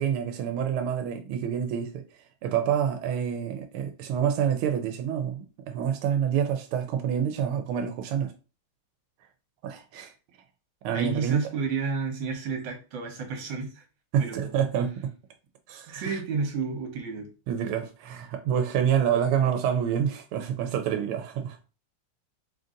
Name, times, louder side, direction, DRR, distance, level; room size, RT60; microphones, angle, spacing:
voice 1, 0.0-2.0 2.4-8.3 9.6-10.1 10.8-11.4 14.1-15.1 15.7-16.2 17.5-21.6, right 8 dB, 90° right, 1.5 m, -27 dB
voice 2, 10.9-13.8 14.2-14.6 15.9-17.3, right 5 dB, 70° right, 1.6 m, -31 dB
3.9 x 2.6 x 3.6 m
omnidirectional pair, 2.3 m